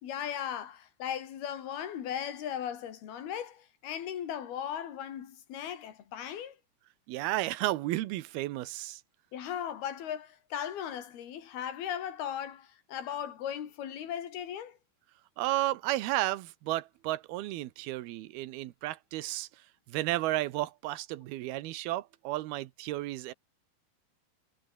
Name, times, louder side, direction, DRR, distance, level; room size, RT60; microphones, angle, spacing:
voice 1, 0.0-6.6 9.3-14.8, left 9 dB, 90° left, 4.4 m, -37 dB
voice 2, 7.1-9.0 15.4-19.5 19.9-23.3, right 16 dB, 90° right, 2.9 m, -33 dB
omnidirectional pair, 4.3 m